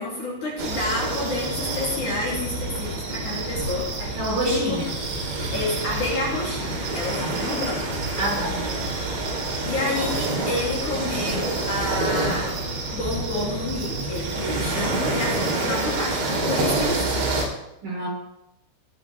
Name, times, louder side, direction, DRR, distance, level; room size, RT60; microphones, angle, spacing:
voice 1, 0.0-4.8 5.5-7.9 9.6-12.5 12.9-17.5, left 2 dB, 40° left, -6 dB, 4.3 m, -29 dB
sound 1, 0.6-17.4, right 2 dB, 60° right, 4.9 m, -27 dB
voice 2, 4.0-4.9 7.2-7.5 8.2-8.7 17.8-18.1, equal, 45° right, -3 dB, 5.7 m, -28 dB
18.0 x 10.5 x 3.7 m, 0.86 s
omnidirectional pair, 5.8 m